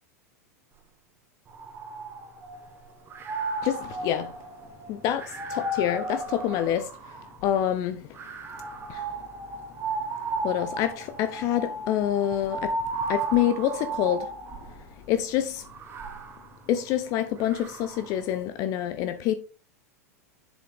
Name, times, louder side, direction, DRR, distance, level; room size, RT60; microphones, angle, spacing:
sound 1, 1.5-2.7 3.1-7.5 8.1-14.8 15.6-18.2, right 2 dB, 25° right, 1.7 m, -34 dB
voice 1, 4.9-5.2 5.5-6.8 7.4-8.0 10.4-12.7 13.1-14.2 15.1-15.6 16.7-19.3, left 11 dB, 40° left, 0.8 m, -26 dB
7.1 x 7.1 x 3.6 m
figure-of-eight pair, 90°, 9 cm